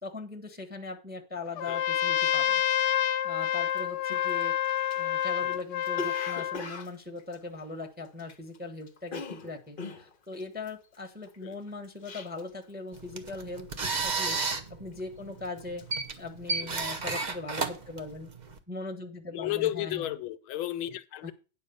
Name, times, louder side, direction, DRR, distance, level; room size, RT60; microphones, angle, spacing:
voice 1, 0.0-2.6 3.2-4.5 5.0-13.7 14.0-14.4 14.8-15.8 16.2-18.3 18.7-20.1 21.2-21.3, left 3 dB, 5° right, 0.8 m, -40 dB
Trumpet, 1.6-6.6, left 10 dB, 70° left, 1.2 m, -28 dB
Cough, 3.7-3.8 4.1-8.6 8.8-12.6 12.9-13.3 13.6-14.0 14.5-15.1 15.4-17.1 17.4-17.7, left 3 dB, 45° left, 0.7 m, -42 dB
sound 1, 12.9-18.6, right 4 dB, 45° right, 0.5 m, -33 dB
voice 2, 19.3-21.3, left 14 dB, 90° left, 1.6 m, -33 dB
9.4 x 5.4 x 6.7 m
omnidirectional pair, 2.2 m